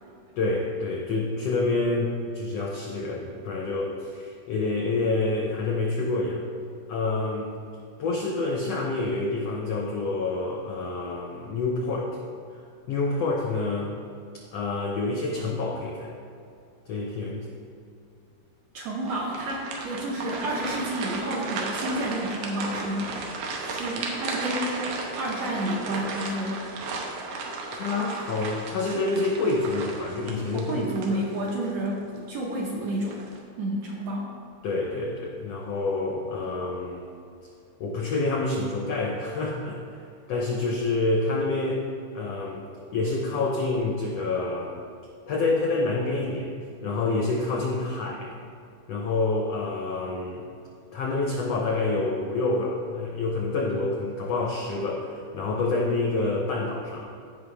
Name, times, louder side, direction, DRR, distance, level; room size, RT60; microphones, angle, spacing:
voice 1, 0.4-6.4 6.9-7.5 8.0-12.2 12.9-13.9 14.5-16.1 16.9-17.5 23.6-23.8 27.7-31.2 34.6-37.1 37.8-40.0 40.3-41.8 42.1-42.6 42.9-44.8 45.3-46.5 46.8-48.4 48.9-50.4 50.9-57.1, left 3 dB, 80° left, 0 dB, 1.4 m, -27 dB
voice 2, 18.7-23.1 23.6-24.9 25.1-26.7 30.5-33.2 33.6-34.3, right 1 dB, 65° right, -3 dB, 1.8 m, -30 dB
sound 1, 19.0-31.7 32.1-32.3 32.9-33.4, right 3 dB, 85° right, 2.7 m, -34 dB
15.0 x 5.3 x 3.4 m, 2.5 s
omnidirectional pair, 3.9 m